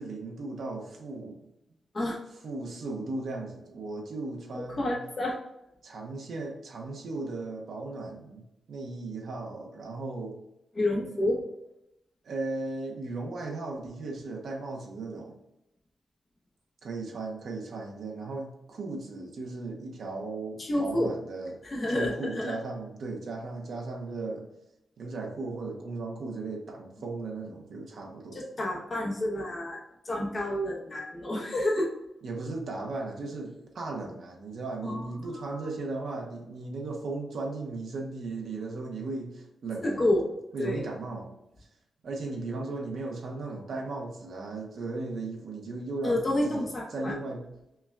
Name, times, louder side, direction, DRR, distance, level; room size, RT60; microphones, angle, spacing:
voice 1, 0.0-1.4 2.4-4.9 5.8-10.4 12.2-15.4 16.8-21.6 21.9-24.5 25.0-28.4 32.2-40.0 40.5-41.3 42.0-47.4, right 3 dB, 70° right, 1 dB, 0.8 m, -36 dB
voice 2, 4.8-5.4 10.7-11.4 20.6-21.1 21.7-22.5 28.3-29.8 30.0-31.9 34.8-35.1 35.4-35.7 39.8-40.3 40.6-40.8 46.0-47.1, left 1 dB, 35° left, -1 dB, 0.9 m, -29 dB
5.4 x 2.3 x 2.3 m, 0.86 s
cardioid pair, 95°, 0 cm